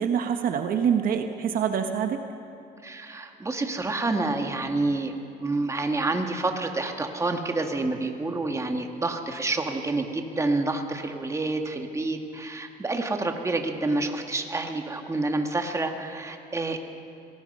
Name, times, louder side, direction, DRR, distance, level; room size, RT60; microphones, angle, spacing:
voice 1, 0.0-2.2, right 8 dB, 60° right, 6 dB, 1.3 m, -25 dB
voice 2, 2.8-5.1 5.4-16.8, right 2 dB, 15° right, 4 dB, 1.9 m, -28 dB
26.0 x 19.0 x 5.5 m, 2.7 s
cardioid pair, 110°, 17 cm